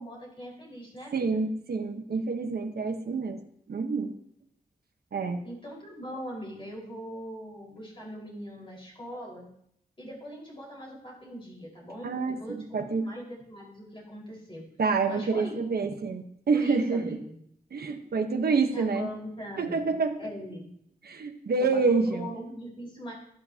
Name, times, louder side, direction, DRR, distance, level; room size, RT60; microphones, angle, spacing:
voice 1, 0.0-1.4 5.4-9.5 10.0-12.1 12.4-14.7 15.1-15.9 16.5-17.4 18.7-19.9 20.2-20.7 21.6-23.1, equal, 35° left, -3 dB, 4.8 m, -41 dB
voice 2, 1.1-3.4 3.7-4.1 5.1-5.4 12.0-13.1 14.8-17.2 17.7-19.1 19.6-20.1 21.0-22.3, right 4 dB, 85° right, 6 dB, 1.1 m, -27 dB
13.0 x 11.0 x 2.9 m, 0.70 s
wide cardioid pair, 95°, 16 cm